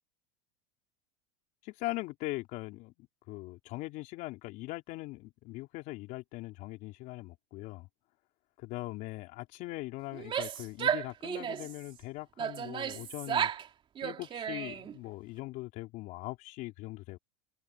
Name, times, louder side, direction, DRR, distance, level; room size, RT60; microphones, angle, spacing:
voice 1, 1.6-7.9 8.6-13.5 14.0-17.2, left 20 dB, 55° left, 3.9 m, -41 dB
Female speech woman speaking / Yell, 10.1-11.8 12.4-13.7 14.0-14.9, right 9 dB, 30° right, 3.0 m, -33 dB
open air
supercardioid pair, 110°, 16 cm